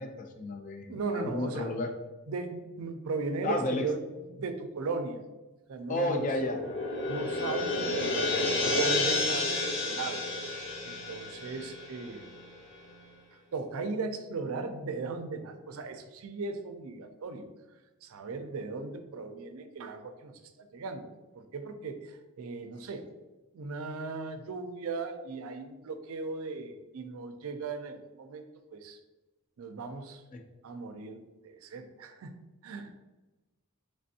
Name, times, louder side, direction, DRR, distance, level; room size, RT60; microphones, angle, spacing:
voice 1, 0.0-1.9 3.4-3.9 5.9-6.6 30.3-30.4, left 1 dB, 35° left, 5 dB, 0.4 m, -32 dB
voice 2, 0.9-1.7 2.3-5.2 5.7-6.3 7.1-12.2 13.5-17.5 18.0-23.1 23.5-29.0 29.6-30.2 30.6-32.3 32.6-33.0, right 4 dB, 75° right, 7 dB, 0.4 m, -37 dB
sound 1, 6.0-12.5, left 2 dB, 55° left, 0.9 m, -31 dB
3.3 x 3.3 x 2.7 m, 1.1 s
head